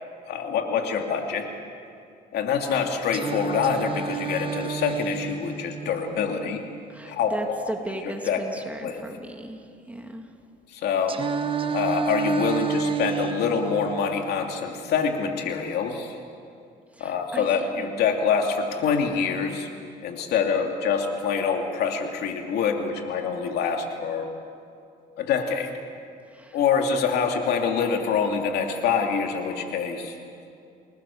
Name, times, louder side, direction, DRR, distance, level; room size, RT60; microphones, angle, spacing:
voice 1, 0.3-1.5 2.3-6.6 7.0-7.7 8.0-8.4 8.7-9.0 10.7-11.2 11.7-16.2 17.0-19.7 20.0-24.3 25.2-25.7 26.5-30.2, left 6 dB, 75° left, 3 dB, 2.9 m, -25 dB
Singing, 3.1-7.1 11.1-15.1, right 7 dB, 30° right, 1.3 m, -31 dB
voice 2, 6.9-10.3 16.9-18.0 26.3-26.6, right 1 dB, 10° right, 3 dB, 2.6 m, -37 dB
29.5 x 19.5 x 7.2 m, 2.4 s
cardioid pair, 110°, 17 cm